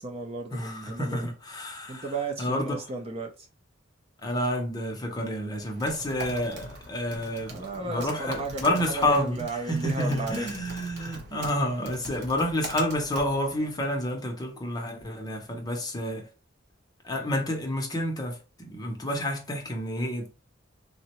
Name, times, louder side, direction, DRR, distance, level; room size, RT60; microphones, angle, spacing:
voice 1, 0.0-1.3 1.9-3.3 7.1-10.5, right 3 dB, 30° right, 0.5 m, -34 dB
voice 2, 0.5-2.8 4.2-16.3 17.0-20.3, left 1 dB, 20° left, 0.7 m, -29 dB
Typing, 5.6-13.8, right 2 dB, 60° right, 0.7 m, -43 dB
3.7 x 2.1 x 2.9 m
head